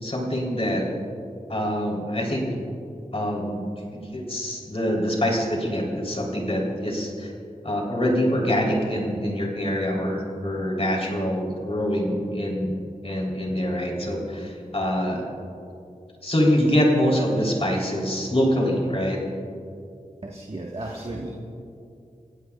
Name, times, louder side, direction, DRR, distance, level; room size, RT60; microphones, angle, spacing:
voice 1, 0.0-0.8 1.5-2.5 3.1-3.7 3.9-7.3 7.6-12.7 13.0-15.2 16.2-19.2, equal, 45° left, -1 dB, 3.8 m, -25 dB
voice 2, 20.2-21.3, right 2 dB, 45° right, -2 dB, 1.6 m, -34 dB
30.0 x 16.0 x 2.5 m, 2.5 s
wide cardioid pair, 70°, 14 cm